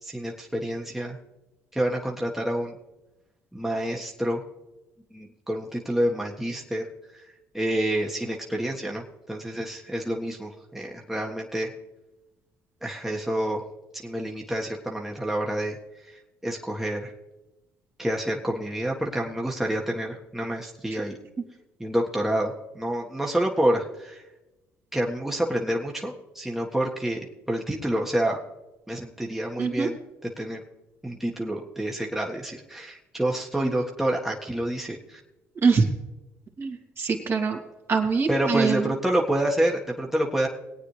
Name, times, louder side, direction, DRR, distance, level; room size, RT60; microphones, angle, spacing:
voice 1, 0.0-1.2 1.7-2.7 3.5-4.4 5.1-6.9 7.1-11.7 12.8-13.6 14.0-15.8 16.0-17.1 18.0-21.2 21.8-24.2 24.9-27.2 27.5-28.4 28.9-30.6 31.0-35.2 38.3-40.5, right 1 dB, 5° right, -1 dB, 1.6 m, -28 dB
voice 2, 29.6-29.9 35.6-35.9 36.6-37.6 37.9-38.9, right 5 dB, 45° right, 2 dB, 2.4 m, -23 dB
21.0 x 8.9 x 3.3 m, 1.0 s
supercardioid pair, 70°, 6 cm